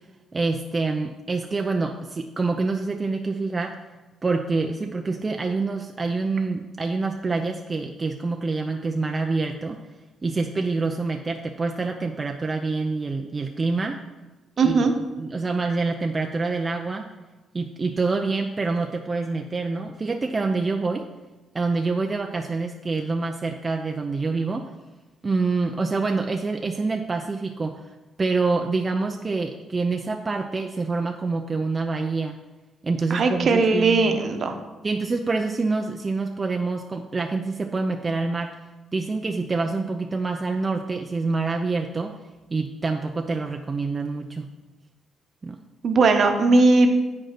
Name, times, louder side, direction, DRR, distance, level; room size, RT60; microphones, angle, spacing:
voice 1, 0.3-3.8 4.2-9.8 10.2-14.0 14.6-14.9 15.2-17.1 17.5-21.1 21.5-24.7 25.2-27.9 28.2-32.4 32.8-34.2 34.8-38.5 38.9-42.2 42.5-44.5 45.4-45.6, right 3 dB, 30° right, 3 dB, 0.6 m, -26 dB
voice 2, 14.6-14.9 33.1-34.5 45.8-46.9, right 3 dB, 55° right, 6 dB, 1.1 m, -18 dB
8.3 x 5.4 x 5.9 m, 1.2 s
cardioid pair, 90°, 0 cm